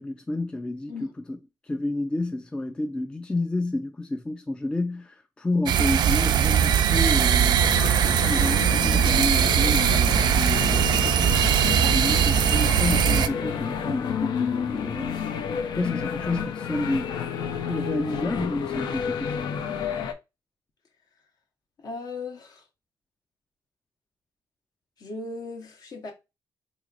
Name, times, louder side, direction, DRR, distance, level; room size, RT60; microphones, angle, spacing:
voice 1, 0.0-1.4 1.6-7.7 8.0-11.3 11.8-15.2 15.8-17.2 17.7-19.3, left 2 dB, 10° left, 0.3 m, -30 dB
sound 1, 5.7-13.3, right 9 dB, 70° right, 0.3 m, -21 dB
sound 2, 7.6-20.1, left 7 dB, 70° left, 0.5 m, -30 dB
voice 2, 21.8-22.6 25.0-26.1, left 4 dB, 55° left, 1.0 m, -36 dB
3.9 x 3.0 x 2.4 m
cardioid pair, 130°, 8 cm